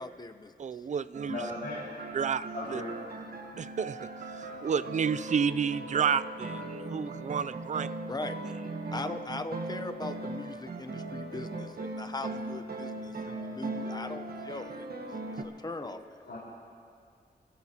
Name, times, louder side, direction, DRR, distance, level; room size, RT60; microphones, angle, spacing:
voice 1, 0.0-0.8 8.0-8.4 8.9-16.2, left 2 dB, 25° left, 9 dB, 0.7 m, -40 dB
voice 2, 0.6-1.4 2.1-2.8 3.6-7.9, right 7 dB, 45° right, 14 dB, 0.4 m, -31 dB
sound 1, 1.1-15.4, right 2 dB, 60° right, 1.3 m, -39 dB
voice 3, 1.3-1.9 2.5-2.9 16.3-16.4, left 2 dB, 75° left, -8 dB, 4.2 m, -36 dB
27.0 x 14.5 x 2.9 m, 2.2 s
wide cardioid pair, 100°, 18 cm